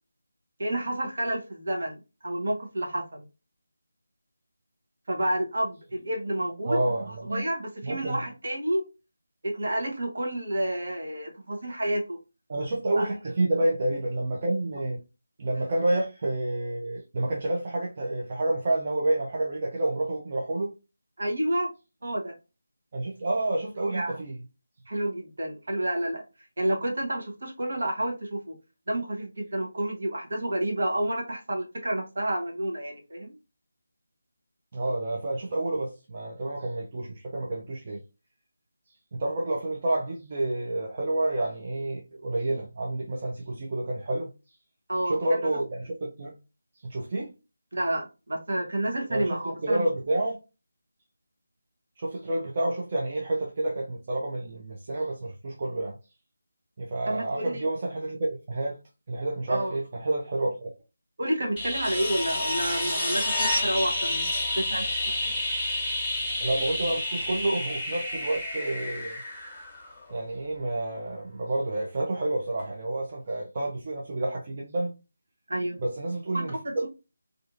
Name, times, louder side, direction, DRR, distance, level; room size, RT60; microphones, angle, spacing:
voice 1, 0.6-3.2 5.1-8.8 9.4-12.2 13.0-13.1 21.2-21.7 22.0-22.3 23.9-24.2 24.9-26.2 26.6-28.5 28.9-33.4 44.9-45.4 47.7-49.8 57.1-57.7 59.5-59.7 61.2-64.3 64.6-65.3 75.5-75.8 76.3-76.9, right 1 dB, 55° right, 0.9 m, -30 dB
voice 2, 6.7-7.3 7.8-8.2 12.5-15.0 15.4-20.7 22.9-24.4 34.7-38.0 39.2-44.3 45.0-46.3 46.7-47.3 49.1-50.4 52.0-56.0 56.8-58.8 59.1-60.7 66.4-69.2 70.1-74.9 75.8-76.9, right 2 dB, 35° right, 0.5 m, -29 dB
sound 1, 61.6-70.2 72.6-72.7, left 1 dB, 5° left, 1.2 m, -29 dB
2.7 x 2.4 x 2.4 m
figure-of-eight pair, 160°, 0 cm